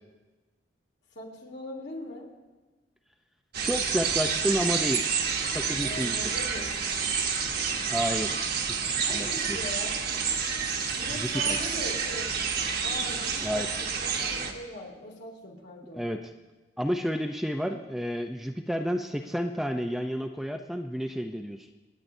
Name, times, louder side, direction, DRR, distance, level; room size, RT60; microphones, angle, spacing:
voice 1, 1.1-2.3 5.8-6.8 9.0-10.0 11.0-12.5 12.8-16.0, left 1 dB, 65° left, -1 dB, 2.7 m, -41 dB
sound 1, 3.5-14.5, right 6 dB, 60° right, 1.2 m, -29 dB
voice 2, 3.6-5.1 5.5-6.2 7.9-8.4 8.8-9.6 11.1-11.6 13.4-13.7 15.9-16.3 16.8-21.7, equal, ahead, 4 dB, 0.5 m, -30 dB
27.0 x 9.7 x 2.7 m, 1.2 s
head